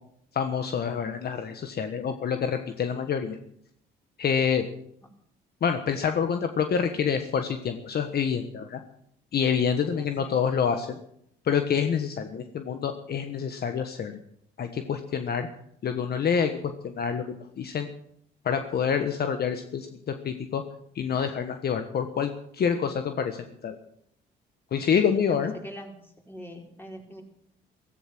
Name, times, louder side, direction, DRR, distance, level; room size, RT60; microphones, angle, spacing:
voice 1, 0.3-3.4 4.2-4.7 5.6-8.8 9.3-11.0 11.4-14.1 14.6-15.5 15.8-17.9 18.4-20.6 20.9-23.7 24.7-25.5, left 7 dB, 55° left, 7 dB, 1.3 m, -27 dB
voice 2, 10.0-10.4 25.2-25.4 25.6-25.9 26.3-27.2, equal, 10° left, 1 dB, 5.0 m, -42 dB
15.5 x 15.0 x 6.1 m, 0.71 s
cardioid pair, 85°, 19 cm